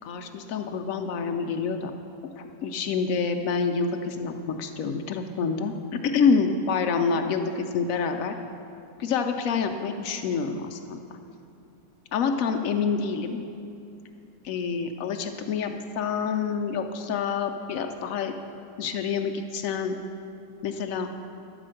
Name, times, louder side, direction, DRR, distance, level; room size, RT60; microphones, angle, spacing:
voice 1, 0.0-1.9 2.4-5.7 6.0-8.4 9.0-11.0 12.1-13.4 14.4-18.3 18.8-20.0 20.6-21.1, left 5 dB, 70° left, 5 dB, 0.8 m, -27 dB
11.5 x 5.0 x 7.5 m, 2.6 s
omnidirectional pair, 1.9 m